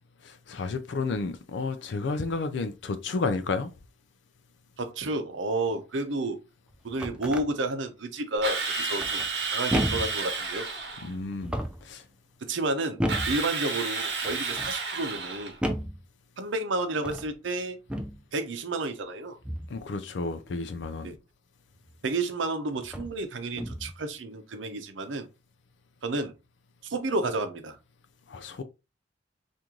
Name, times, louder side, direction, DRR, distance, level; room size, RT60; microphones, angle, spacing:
voice 1, 0.2-3.7 11.0-11.5 11.8-12.0 19.7-21.1 28.3-28.6, left 3 dB, 70° left, 0.4 m, -31 dB
voice 2, 4.8-6.4 6.8-9.2 9.5-10.7 12.4-13.0 13.3-15.5 16.4-17.8 18.3-19.4 21.0-21.2 22.0-25.3 26.0-26.3 26.9-27.8, right 2 dB, 90° right, 0.6 m, -31 dB
sound 1, 6.7-7.5 9.0-9.4 9.7-10.2 11.3-11.9 13.0-13.4 14.2-14.7 15.6-16.0 16.9-17.3 17.9-18.2 19.4-19.8 21.9-22.0 22.8-23.2 23.5-24.0, equal, 5° right, 0.4 m, -32 dB
Drill, 8.4-11.1 13.1-15.6, right 4 dB, 60° right, 1.0 m, -31 dB
3.6 x 2.5 x 2.9 m
head